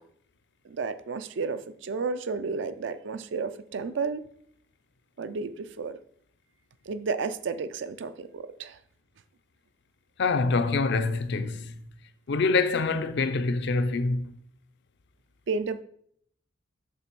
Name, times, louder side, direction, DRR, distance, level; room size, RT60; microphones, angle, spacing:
voice 1, 0.7-4.2 5.2-6.0 6.9-8.8 15.5-15.8, right 4 dB, 65° right, 0.5 m, -32 dB
voice 2, 10.2-11.7 12.3-14.3, left 3 dB, 65° left, 0.5 m, -25 dB
7.1 x 3.3 x 6.0 m
head